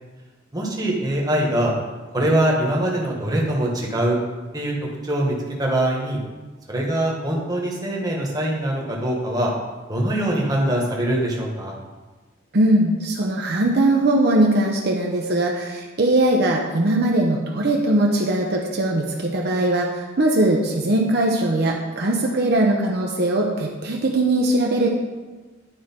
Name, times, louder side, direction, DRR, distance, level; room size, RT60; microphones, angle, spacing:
voice 1, 0.5-1.7 2.1-4.2 4.5-4.7 5.0-6.2 6.7-9.5 9.9-11.7, right 1 dB, 20° right, -2 dB, 1.3 m, -23 dB
voice 2, 12.5-24.9, right 1 dB, 50° right, 0 dB, 0.7 m, -20 dB
10.5 x 4.5 x 4.4 m, 1.3 s
head